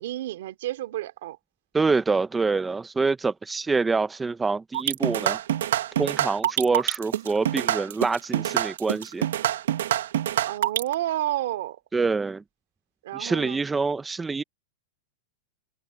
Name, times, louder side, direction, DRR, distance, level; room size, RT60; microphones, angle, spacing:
voice 1, 0.0-1.4 10.5-11.8 13.0-13.6, right 14 dB, 55° right, 2.8 m, -30 dB
voice 2, 1.7-5.4 6.0-9.3 11.9-12.4 13.1-14.4, right 4 dB, 5° right, 0.4 m, -26 dB
sound 1, 4.7-10.9, right 12 dB, 70° right, 0.9 m, -25 dB
supercardioid pair, 175°, 0 cm